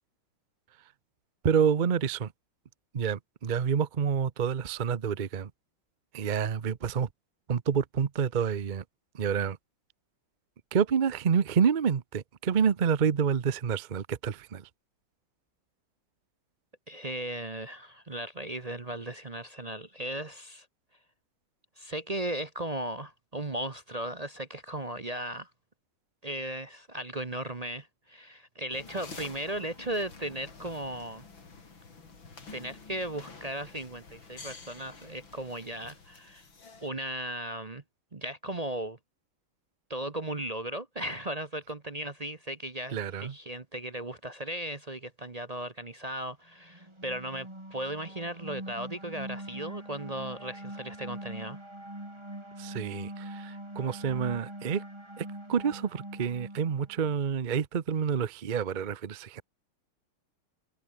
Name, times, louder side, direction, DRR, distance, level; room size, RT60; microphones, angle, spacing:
voice 1, 1.4-2.3 2.9-5.5 6.1-7.1 7.5-8.8 9.1-9.6 10.7-14.7 42.9-43.3 52.6-54.8 55.2-59.4, right 7 dB, 75° right, 0.4 m, -28 dB
voice 2, 16.9-20.7 21.8-25.5 26.2-31.2 32.5-36.5 36.8-37.8 38.1-39.0 39.9-51.6, right 1 dB, 30° right, 0.7 m, -36 dB
sound 1, 28.7-36.9, left 4 dB, 65° left, 4.5 m, -49 dB
sound 2, 46.6-57.1, right 1 dB, 10° right, 4.4 m, -43 dB
omnidirectional pair, 2.3 m